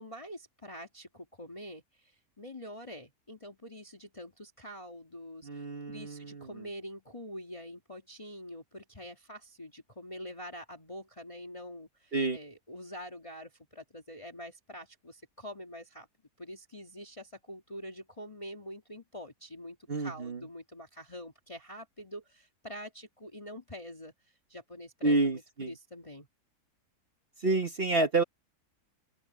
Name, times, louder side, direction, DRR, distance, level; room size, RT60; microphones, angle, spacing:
voice 1, 0.0-16.1 16.4-26.3, equal, 20° left, 2.0 m, -46 dB
voice 2, 5.4-6.5 12.1-12.4 19.9-20.4 25.0-25.7 27.4-28.2, right 3 dB, 40° right, 1.4 m, -29 dB
open air
omnidirectional pair, 1.7 m